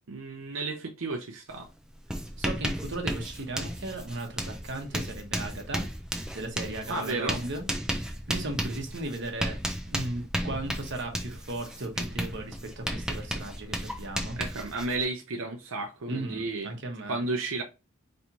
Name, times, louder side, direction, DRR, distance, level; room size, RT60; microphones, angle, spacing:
voice 1, 0.1-1.7 6.9-7.4 14.4-16.7 17.1-17.6, right 3 dB, 90° right, 0.8 m, -32 dB
Writing, 1.5-1.7 1.9-15.0, equal, 5° right, 0.6 m, -34 dB
voice 2, 2.4-5.9 6.3-7.6 8.0-9.6 9.8-14.4 16.1-17.2, right 2 dB, 60° right, 1.2 m, -36 dB
4.4 x 3.2 x 2.7 m
head